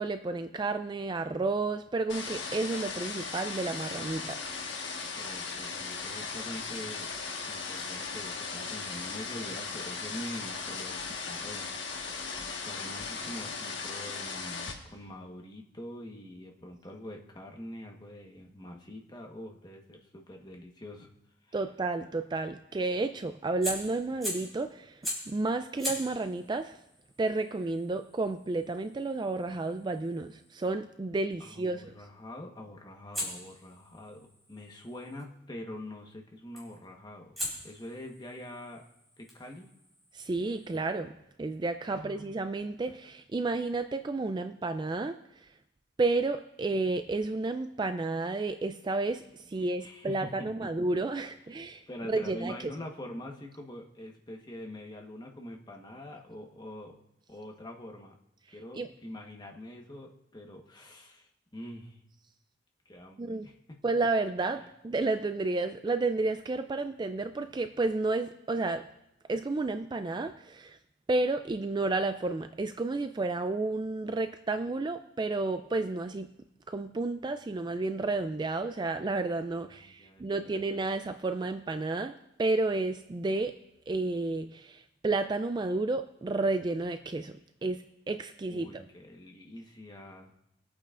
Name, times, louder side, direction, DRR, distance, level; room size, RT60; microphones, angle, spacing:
voice 1, 0.0-4.4 21.5-26.8 27.2-31.9 40.1-45.5 46.0-52.7 58.8-58.9 63.2-63.5 63.8-68.8 69.3-70.8 71.1-76.3 76.7-83.5 83.9-88.8, right 3 dB, 25° right, 9 dB, 0.3 m, -31 dB
sound 1, 2.1-14.7, left 4 dB, 65° left, 1.5 m, -37 dB
voice 2, 5.1-7.1 7.5-11.7 12.0-21.1 21.4-21.6 31.4-37.4 37.6-38.8 39.2-39.7 41.9-42.2 49.6-50.7 51.2-51.3 51.9-57.0 57.3-58.1 58.5-62.0 62.8-63.5 79.8-80.6 88.5-90.3, left 1 dB, 20° left, 1 dB, 1.2 m, -45 dB
Fire, 23.6-24.6 25.0-25.4 25.8-30.7 33.1-35.2 36.5-36.8 37.4-40.8, left 1 dB, ahead, 4.0 m, -41 dB
22.0 x 8.6 x 2.5 m, 0.83 s
head